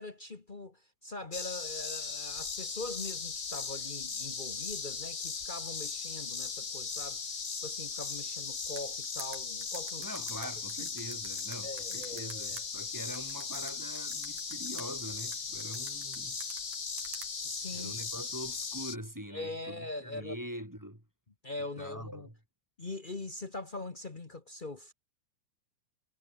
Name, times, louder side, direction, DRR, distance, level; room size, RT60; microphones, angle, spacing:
voice 1, 0.0-10.1 10.4-10.5 11.6-12.6 17.4-18.0 19.3-20.4 21.4-22.3 22.8-24.9, left 2 dB, 75° left, 0.4 m, -42 dB
sound 1, 1.3-19.0, left 5 dB, 30° left, 1.8 m, -38 dB
sound 2, 8.8-12.6 13.1-14.9 15.3-17.3, right 4 dB, 60° right, 6.6 m, -46 dB
voice 2, 10.0-16.4 17.7-21.0 21.8-22.3, equal, 5° right, 2.5 m, -43 dB
omnidirectional pair, 3.8 m